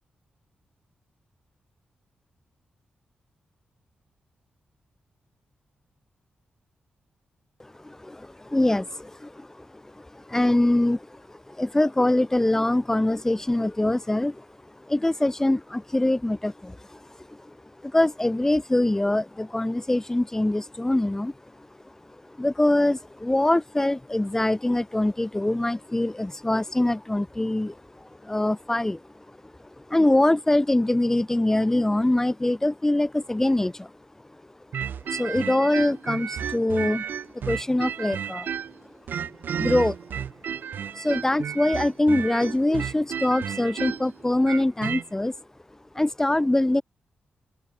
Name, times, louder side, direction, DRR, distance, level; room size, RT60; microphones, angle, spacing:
voice 1, 7.6-14.5 14.8-17.6 17.8-21.9 22.3-29.3 29.6-33.9 35.1-37.1 37.4-38.5 39.5-40.6 40.9-45.3 46.0-46.8, left 1 dB, 15° left, 5.3 m, -24 dB
sound 1, 34.7-38.8 39.1-45.0, right 8 dB, 75° right, 2.8 m, -32 dB
open air
cardioid pair, 80°, 3 cm